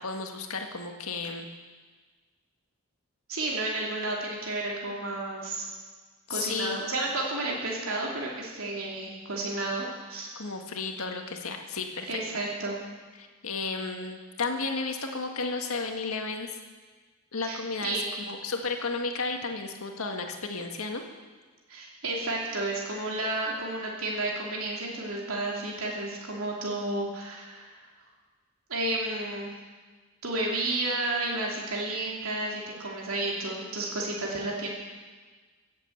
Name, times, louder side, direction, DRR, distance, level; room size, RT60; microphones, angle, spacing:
voice 1, 0.0-1.5 6.3-6.8 10.3-12.2 13.2-16.5 17.3-21.0, left 4 dB, 80° left, 4 dB, 1.8 m, -33 dB
voice 2, 3.3-5.7 6.3-10.3 12.1-12.8 17.4-18.1 21.7-27.8 28.7-29.5 30.2-34.7, right 2 dB, 80° right, -3 dB, 2.8 m, -32 dB
16.5 x 8.2 x 7.8 m, 1.4 s
head